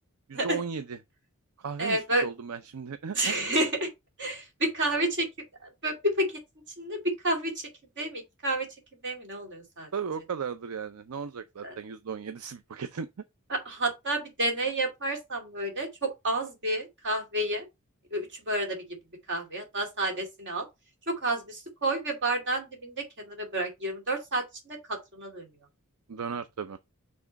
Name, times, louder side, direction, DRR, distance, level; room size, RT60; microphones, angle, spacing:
voice 1, 0.3-1.0 1.6-3.3 9.9-13.1 26.1-26.8, right 6 dB, 75° right, 0.5 m, -36 dB
voice 2, 1.8-2.3 3.1-3.9 4.2-5.3 5.8-6.4 6.8-7.7 8.0-8.7 9.0-9.9 11.6-11.7 13.5-17.7 18.1-18.8 19.3-20.6 21.1-25.5, right 1 dB, 55° right, 2.4 m, -30 dB
6.0 x 3.6 x 5.1 m
head